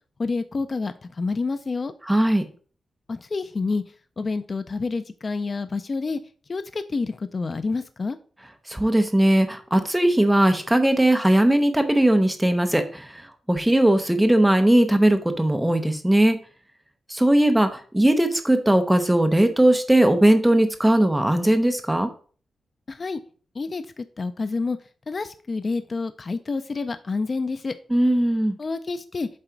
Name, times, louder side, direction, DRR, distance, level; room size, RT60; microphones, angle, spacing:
voice 1, 0.2-1.9 3.1-3.8 4.2-6.2 6.5-8.2 22.9-23.2 23.6-24.8 25.1-27.7 28.6-29.3, left 4 dB, 30° left, 11 dB, 0.4 m, -28 dB
voice 2, 2.1-2.4 8.7-13.2 13.5-16.4 17.1-22.1 27.9-28.5, right 1 dB, 5° right, 7 dB, 0.8 m, -19 dB
7.6 x 4.0 x 4.5 m, 0.42 s
wide cardioid pair, 160°, 0 cm